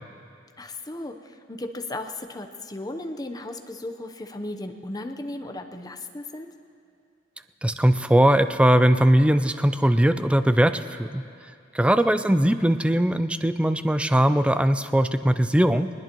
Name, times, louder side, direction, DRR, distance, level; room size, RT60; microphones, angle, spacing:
voice 1, 0.6-6.5 12.1-12.3, left 2 dB, 20° left, 5 dB, 0.8 m, -36 dB
voice 2, 7.6-11.2 11.7-15.9, right 1 dB, 5° right, 10 dB, 0.4 m, -20 dB
21.5 x 20.0 x 3.0 m, 2.4 s
head